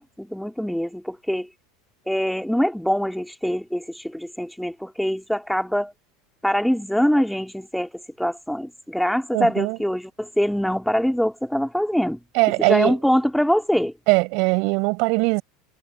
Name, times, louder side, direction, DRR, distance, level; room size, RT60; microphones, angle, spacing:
voice 1, 0.0-1.5 2.1-5.9 6.4-7.9 8.2-12.2 12.6-13.9, equal, ahead, 2.3 m, -23 dB
voice 2, 9.3-9.8 12.3-13.0 14.1-15.4, right 30 dB, 60° right, 6.3 m, -20 dB
hypercardioid pair, 90°, 0 cm